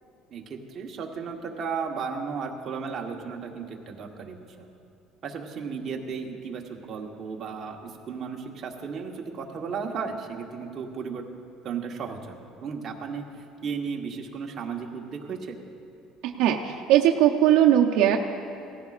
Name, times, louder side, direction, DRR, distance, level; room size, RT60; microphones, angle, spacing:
voice 1, 0.3-4.7 5.2-11.2 11.6-13.2 13.6-15.6, right 5 dB, 35° right, 1 dB, 1.1 m, -34 dB
voice 2, 16.2-18.2, right 11 dB, 75° right, 2 dB, 0.6 m, -20 dB
18.0 x 15.0 x 2.5 m, 2.7 s
cardioid pair, 145°, 0 cm